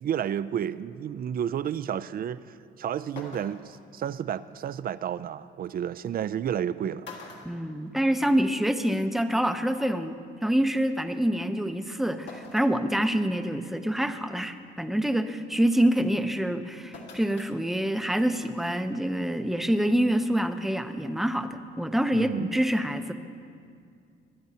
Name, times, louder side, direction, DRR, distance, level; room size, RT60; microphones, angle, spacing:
voice 1, 0.0-7.1 22.1-22.5, right 9 dB, 50° right, 0.4 m, -31 dB
sound 1, 2.6-2.7 3.2-3.8 5.4-5.5 6.5-6.7 7.0-8.4 8.8-8.9 10.1-10.2 12.3-12.8 13.3-13.4 14.0-14.3 16.9-17.5 17.9-18.0, left 3 dB, 70° left, 1.9 m, -45 dB
voice 2, 7.4-23.1, right 1 dB, ahead, 0.6 m, -26 dB
22.0 x 10.5 x 2.8 m
cardioid pair, 90°, 20 cm